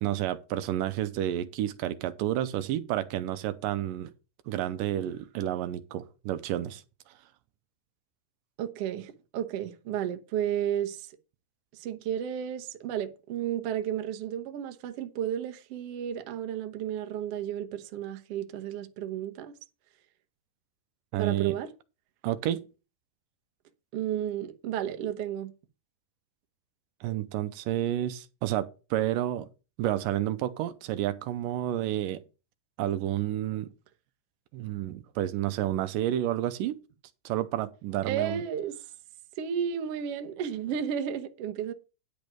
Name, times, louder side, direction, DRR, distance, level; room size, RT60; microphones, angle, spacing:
voice 1, 0.0-4.1 4.5-6.8 21.1-21.6 22.2-22.7 27.0-29.5 29.8-32.2 32.8-33.7 34.5-36.8 37.3-38.4, right 12 dB, 80° right, 2.3 m, -30 dB
voice 2, 8.6-11.1 11.7-19.5 21.2-21.7 23.9-25.5 38.1-38.8 39.4-41.7, right 9 dB, 65° right, 1.6 m, -33 dB
10.5 x 5.2 x 6.0 m
omnidirectional pair, 3.9 m